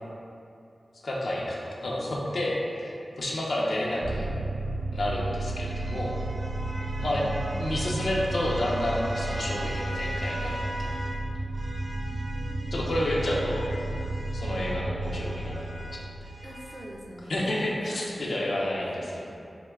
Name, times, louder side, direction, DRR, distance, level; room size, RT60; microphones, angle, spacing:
voice 1, 1.0-4.3 4.9-6.2 7.0-7.2 7.6-10.9 12.7-13.7 14.3-15.8 17.3-19.4, left 1 dB, 75° left, -4 dB, 0.5 m, -30 dB
voice 2, 3.5-4.0 7.0-7.5 12.1-13.5 16.4-18.7 19.1-19.3, equal, 20° right, -2 dB, 0.3 m, -44 dB
sound 1, 4.0-17.4, right 2 dB, 90° right, 0.5 m, -33 dB
sound 2, 4.6-11.2 11.5-16.9, equal, 45° right, 0.7 m, -41 dB
2.9 x 2.1 x 3.4 m, 2.6 s
wide cardioid pair, 105°, 0 cm